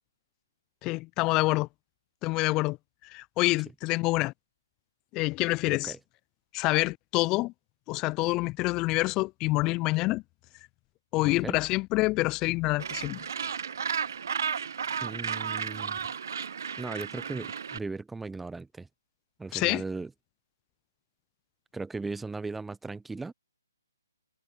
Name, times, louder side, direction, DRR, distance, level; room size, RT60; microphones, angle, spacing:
voice 1, 0.8-1.7 2.2-2.8 3.0-4.3 5.1-5.9 6.5-7.5 7.9-10.2 11.1-13.2 19.5-19.8, left 21 dB, 20° left, 0.5 m, -27 dB
voice 2, 5.7-6.0 11.2-11.6 15.0-16.0 16.8-18.9 19.4-20.1 21.7-23.3, right 3 dB, 5° right, 0.8 m, -37 dB
Gull seagull, 12.8-17.8, right 7 dB, 60° right, 1.1 m, -33 dB
figure-of-eight pair, 140°, 2 cm